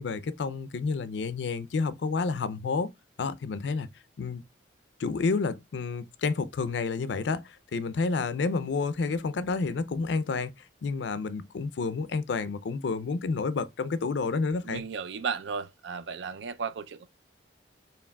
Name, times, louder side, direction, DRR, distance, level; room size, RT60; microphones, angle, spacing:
voice 1, 0.0-2.9 3.2-3.9 4.2-4.4 5.0-10.5 10.8-14.8, left 4 dB, 80° left, 0.4 m, -30 dB
voice 2, 14.6-17.1, right 6 dB, 85° right, 0.4 m, -34 dB
4.7 x 3.2 x 2.2 m
head